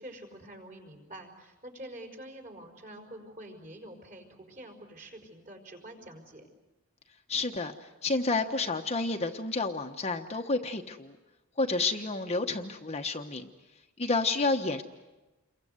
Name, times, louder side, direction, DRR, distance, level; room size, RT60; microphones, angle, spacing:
voice 1, 0.0-6.5, right 1 dB, 35° right, 3 dB, 5.3 m, -47 dB
voice 2, 7.3-11.2 11.6-13.5 14.0-14.8, left 3 dB, 30° left, 4 dB, 1.2 m, -30 dB
29.0 x 23.0 x 8.0 m, 1.1 s
head